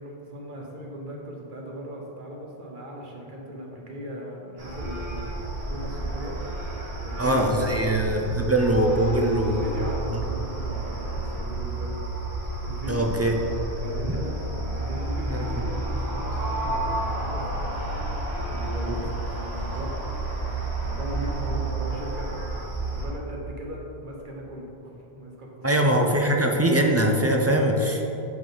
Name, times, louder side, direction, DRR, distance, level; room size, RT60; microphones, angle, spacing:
voice 1, 0.0-5.3 5.7-6.4 7.0-7.5 7.7-8.1 9.5-12.0 12.6-13.1 13.8-14.4 14.7-17.9 18.5-19.9 20.8-22.5 22.7-26.1, equal, 55° right, -1 dB, 1.2 m, -38 dB
sound 1, 4.6-23.1, right 2 dB, 85° right, 1.8 m, -31 dB
voice 2, 7.2-9.9 12.9-13.4 14.1-14.2 15.3-15.5 25.6-28.0, right 1 dB, 25° right, 2 dB, 0.3 m, -22 dB
9.0 x 4.7 x 3.9 m, 3.0 s
omnidirectional pair, 1.1 m